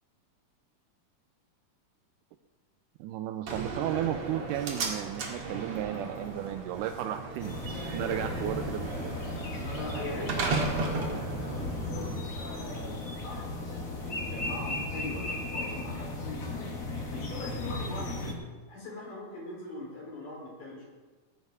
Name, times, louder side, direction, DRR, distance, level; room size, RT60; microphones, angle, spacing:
voice 1, 3.0-7.6 7.9-9.4, right 12 dB, 80° right, 8 dB, 2.0 m, -34 dB
Slam, 3.5-12.5, right 3 dB, 60° right, 2.9 m, -35 dB
sound 1, 7.4-18.3, left 2 dB, 40° left, 1.3 m, -36 dB
voice 2, 9.6-16.7 17.1-18.4 18.7-20.8, left 2 dB, 70° left, -4 dB, 6.0 m, -41 dB
18.5 x 8.2 x 4.8 m, 1.3 s
omnidirectional pair, 3.9 m